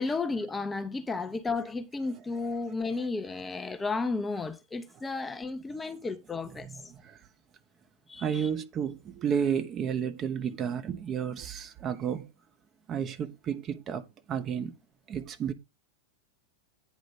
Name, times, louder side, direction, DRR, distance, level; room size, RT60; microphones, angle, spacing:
voice 1, 0.0-6.7 8.1-8.5, left 3 dB, 10° left, 0.8 m, -33 dB
voice 2, 6.6-7.2 8.2-12.3 12.9-14.7 15.1-15.5, right 8 dB, 30° right, 1.1 m, -32 dB
9.5 x 5.1 x 5.0 m
figure-of-eight pair, 90°, 0 cm